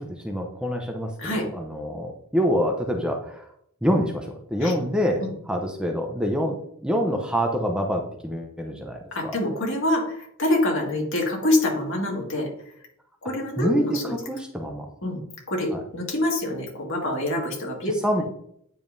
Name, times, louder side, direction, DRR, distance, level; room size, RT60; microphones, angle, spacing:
voice 1, 0.0-3.4 3.8-4.3 4.5-9.0 13.6-14.9 15.7-15.8 18.0-18.2, equal, 5° right, 2 dB, 0.7 m, -26 dB
voice 2, 9.1-12.5 13.2-14.1 15.0-15.2 15.5-18.2, left 1 dB, 60° left, 0 dB, 2.0 m, -26 dB
9.0 x 5.2 x 2.6 m, 0.70 s
head